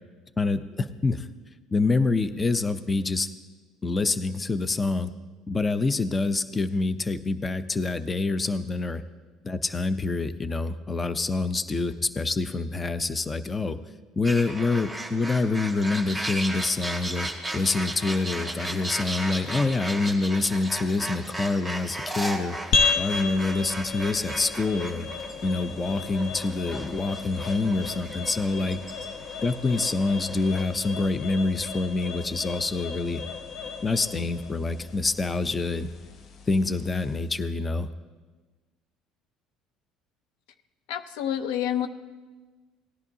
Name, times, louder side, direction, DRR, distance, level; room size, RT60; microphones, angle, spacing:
voice 1, 0.4-1.3 1.7-3.3 3.8-5.1 5.5-9.0 9.4-13.8 14.2-17.3 17.5-22.6 22.9-25.1 25.4-28.8 29.4-33.2 33.8-35.9 36.5-37.9, left 3 dB, 20° left, 12 dB, 0.6 m, -26 dB
sound 1, 14.2-30.6, right 1 dB, ahead, 2.0 m, -36 dB
sound 2, 22.7-37.3, left 4 dB, 55° left, 0.9 m, -33 dB
voice 2, 40.9-41.9, left 10 dB, 80° left, 11 dB, 0.6 m, -28 dB
18.0 x 10.5 x 2.8 m, 1.3 s
supercardioid pair, 95°, 0 cm